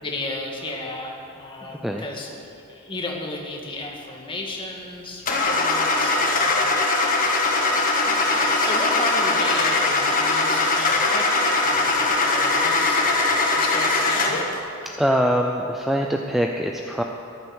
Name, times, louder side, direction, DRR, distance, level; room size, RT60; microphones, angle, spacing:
voice 1, 0.0-6.6 8.0-13.0 13.6-14.4, left 2 dB, 25° left, 0 dB, 1.8 m, -34 dB
Car / Engine starting, 5.3-14.5, left 2 dB, 40° left, 1.5 m, -21 dB
voice 2, 15.0-17.0, equal, ahead, 2 dB, 0.5 m, -23 dB
13.5 x 11.5 x 6.4 m, 2.8 s
head